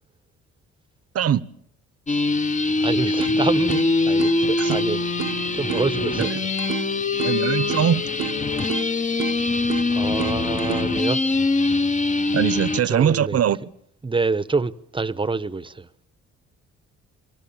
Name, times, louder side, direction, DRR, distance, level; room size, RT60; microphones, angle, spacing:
voice 1, 1.1-1.5 4.6-4.8 6.2-6.3 7.2-8.0 12.3-13.6, right 9 dB, 55° right, 0.9 m, -21 dB
sound 1, 2.1-12.8, left 3 dB, 25° left, 0.9 m, -23 dB
voice 2, 2.8-5.1 5.5-6.8 7.5-7.6 9.9-11.2 12.6-13.4 14.0-15.9, right 3 dB, 15° right, 0.9 m, -27 dB
sound 2, 3.2-11.2, right 14 dB, 85° right, 1.0 m, -33 dB
27.5 x 23.0 x 7.2 m
cardioid pair, 90°, 30 cm